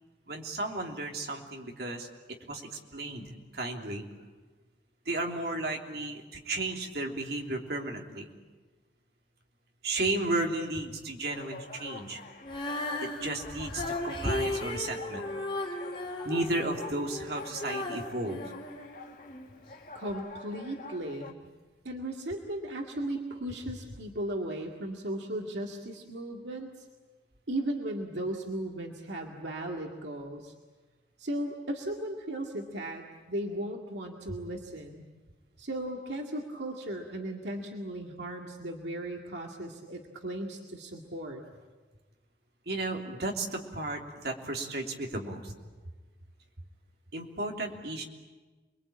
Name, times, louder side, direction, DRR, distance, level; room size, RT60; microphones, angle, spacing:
voice 1, 0.3-2.1 2.5-4.1 5.0-8.3 9.8-12.2 13.0-15.3 16.2-18.4 42.7-45.6 47.1-48.0, right 2 dB, 60° right, 1 dB, 3.2 m, -34 dB
sound 1, 11.3-21.3, left 4 dB, 45° left, 1.7 m, -46 dB
Female singing, 12.4-19.5 20.1-20.2, left 1 dB, 30° left, 3.1 m, -36 dB
voice 2, 19.9-21.4 21.8-26.9 27.5-30.5 31.2-35.0 35.6-41.4, right 1 dB, 80° right, 1 dB, 2.1 m, -36 dB
28.5 x 22.0 x 8.6 m, 1.3 s
head